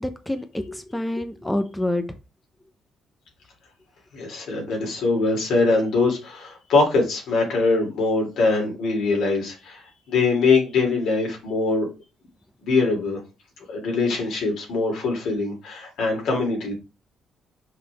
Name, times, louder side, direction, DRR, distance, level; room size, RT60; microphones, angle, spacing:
voice 1, 0.0-2.0, left 1 dB, 10° left, 8 dB, 0.9 m, -27 dB
voice 2, 4.1-11.9 12.6-13.2 13.7-16.7, left 3 dB, 75° left, 0 dB, 3.3 m, -22 dB
5.9 x 5.6 x 3.5 m, 0.29 s
cardioid pair, 90°, 0 cm